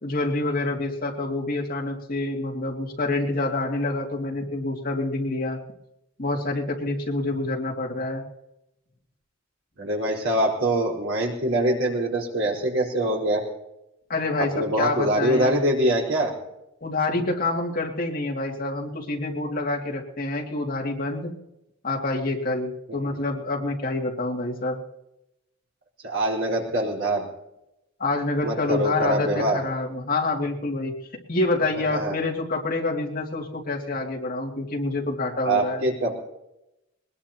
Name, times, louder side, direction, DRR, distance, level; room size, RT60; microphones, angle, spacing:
voice 1, 0.0-5.6 6.2-8.2 14.1-15.7 16.8-21.3 21.8-24.8 28.0-30.9 31.3-35.9, left 2 dB, 45° left, 0 dB, 2.6 m, -27 dB
voice 2, 9.8-13.4 14.5-16.3 22.9-23.1 26.0-27.3 28.4-29.6 31.9-32.2 35.4-36.1, right 1 dB, 70° right, -2 dB, 4.5 m, -24 dB
21.0 x 20.5 x 3.0 m, 0.88 s
head